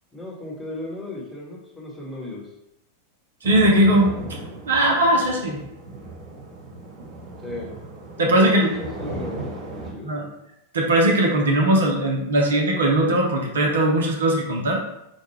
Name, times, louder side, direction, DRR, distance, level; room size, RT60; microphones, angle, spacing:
voice 1, 0.1-2.5 7.4-7.8 8.2-9.5 9.9-10.1, left 2 dB, 5° left, -5 dB, 1.0 m, -35 dB
sound 1, 3.4-9.9, right 2 dB, 40° right, 1.0 m, -36 dB
voice 2, 3.4-4.1 4.6-5.6 8.2-8.7 10.0-10.2 10.7-14.8, right 1 dB, 65° right, 0 dB, 0.6 m, -19 dB
4.4 x 2.2 x 3.1 m, 0.84 s
figure-of-eight pair, 90°, 0 cm